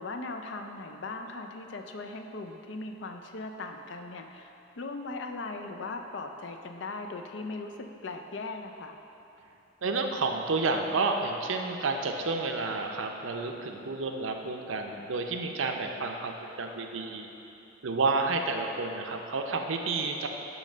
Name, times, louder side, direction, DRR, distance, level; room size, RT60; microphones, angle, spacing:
voice 1, 0.0-8.9, left 3 dB, 60° left, 5 dB, 0.5 m, -39 dB
voice 2, 9.8-17.3 17.8-20.3, right 3 dB, 75° right, 3 dB, 0.6 m, -30 dB
8.7 x 3.2 x 6.4 m, 2.9 s
head